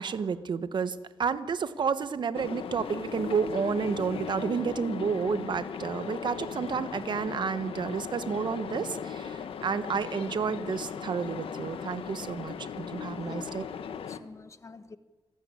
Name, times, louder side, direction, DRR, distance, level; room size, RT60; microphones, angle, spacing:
voice 1, 0.0-13.7, right 6 dB, 55° right, 13 dB, 1.2 m, -31 dB
sound 1, 2.3-14.2, left 7 dB, 80° left, 1.4 m, -38 dB
voice 2, 13.2-15.0, left 4 dB, 30° left, 12 dB, 1.1 m, -49 dB
27.5 x 12.5 x 9.7 m, 1.3 s
wide cardioid pair, 120°, 9 cm